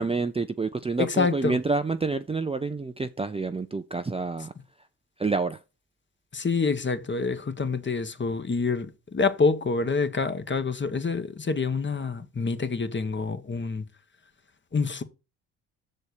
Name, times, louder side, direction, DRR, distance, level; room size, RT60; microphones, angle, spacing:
voice 1, 0.0-4.5 5.2-5.6, right 3 dB, 15° right, 0.6 m, -28 dB
voice 2, 1.0-1.6 6.3-13.8 14.7-15.0, left 4 dB, 30° left, 1.2 m, -27 dB
6.7 x 4.3 x 6.5 m
supercardioid pair, 55°, 39 cm